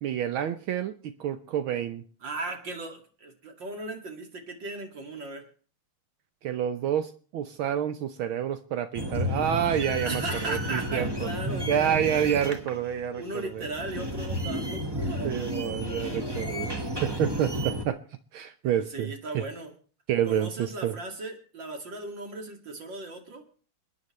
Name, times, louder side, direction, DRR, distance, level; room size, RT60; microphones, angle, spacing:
voice 1, 0.0-2.0 6.4-11.3 11.7-13.7 15.2-18.0 18.3-19.5 20.1-21.0, right 9 dB, 75° right, 10 dB, 1.6 m, -29 dB
voice 2, 2.2-5.4 10.0-11.9 13.2-15.4 18.9-19.7 20.3-23.4, right 2 dB, 60° right, 3 dB, 2.9 m, -37 dB
sound 1, 8.9-17.8, equal, 15° right, 1.2 m, -32 dB
28.5 x 9.6 x 3.2 m, 0.41 s
omnidirectional pair, 2.3 m